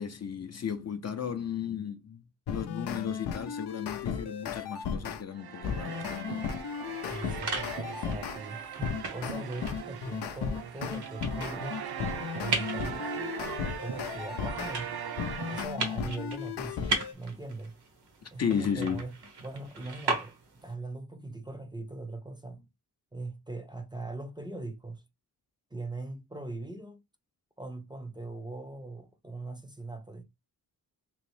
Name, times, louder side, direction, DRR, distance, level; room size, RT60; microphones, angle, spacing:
voice 1, 0.0-2.2 2.5-6.4 18.4-19.0, left 7 dB, 45° left, 0.5 m, -34 dB
sound 1, 2.5-5.2 5.6-8.4 8.8-14.7 15.2-17.1, left 7 dB, 90° left, 0.6 m, -35 dB
sound 2, 5.3-15.7, right 8 dB, 70° right, 0.6 m, -40 dB
sound 3, 6.8-20.7, right 3 dB, 85° right, 1.0 m, -39 dB
voice 2, 7.0-11.8 12.4-13.1 13.6-14.9 15.5-17.8 18.3-19.1 19.4-20.3 20.6-22.7 23.1-25.0 25.7-27.0 27.6-30.2, right 2 dB, 10° right, 0.5 m, -40 dB
3.1 x 2.9 x 3.1 m
cardioid pair, 80°, 39 cm